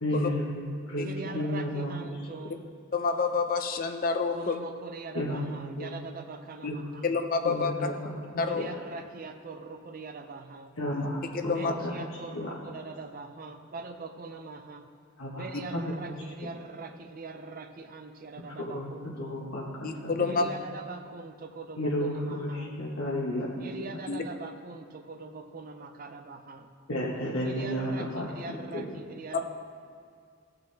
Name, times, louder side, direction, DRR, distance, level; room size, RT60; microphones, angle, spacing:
voice 1, 0.0-2.2 5.1-6.0 6.7-6.8 7.4-8.7 10.8-12.6 15.2-15.8 18.5-20.5 21.8-23.7 26.9-28.9, equal, 75° left, -5 dB, 1.2 m, -33 dB
voice 2, 1.0-2.6 4.3-7.1 8.4-10.8 11.5-14.8 15.3-19.4 20.2-22.7 23.6-26.7 27.4-29.5, right 3 dB, 40° right, 7 dB, 0.6 m, -42 dB
voice 3, 2.9-4.6 7.0-7.7 8.4-8.7 10.9-11.1 11.3-11.7 19.8-20.4 24.1-24.2, left 4 dB, 40° left, 6 dB, 0.6 m, -28 dB
15.5 x 5.9 x 3.4 m, 2.2 s
head